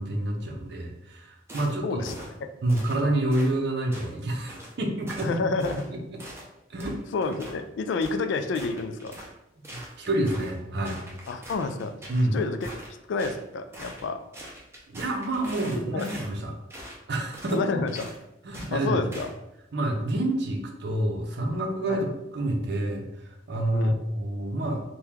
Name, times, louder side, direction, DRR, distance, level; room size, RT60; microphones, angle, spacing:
voice 1, 0.0-2.0 2.6-5.4 6.7-7.0 9.7-11.0 12.1-12.4 14.9-16.5 17.1-17.6 18.4-19.1 19.7-22.1 22.3-24.8, right 1 dB, 65° right, 2 dB, 0.6 m, -28 dB
sound 1, 1.5-1.7 2.1-2.3 2.7-3.0 3.3-3.5 3.9-4.1 4.5-4.7 5.1-5.3 5.6-5.9 6.2-6.5 6.8-7.6 8.0-8.2 8.5-9.3 9.6-10.6 10.8-12.3 12.6-13.4 13.7-14.1 14.3-16.3 16.7-17.0 17.3-17.6 17.9-18.2 18.5-18.7 19.1-19.3, equal, 15° right, 0.6 m, -42 dB
voice 2, 1.8-2.1 5.2-5.8 7.1-9.2 11.3-11.9 12.3-12.8 13.1-14.2 15.9-16.1 17.5-18.1 18.7-19.3 21.9-22.0 23.7-24.0, left 4 dB, 70° left, 8 dB, 0.3 m, -29 dB
2.9 x 2.2 x 3.5 m, 0.88 s
head